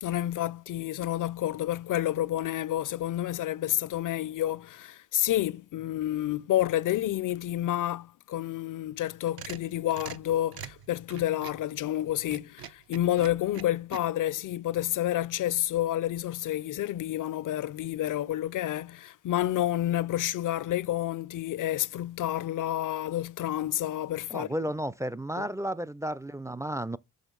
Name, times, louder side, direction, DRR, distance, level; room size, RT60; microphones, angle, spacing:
voice 1, 0.0-24.5 25.4-25.5, left 13 dB, 55° left, 0.5 m, -29 dB
sound 1, 9.0-11.7 12.2-14.0, right 10 dB, 70° right, 0.9 m, -43 dB
voice 2, 24.3-27.0, right 1 dB, 10° right, 0.4 m, -33 dB
6.4 x 5.7 x 5.2 m
cardioid pair, 75°, 38 cm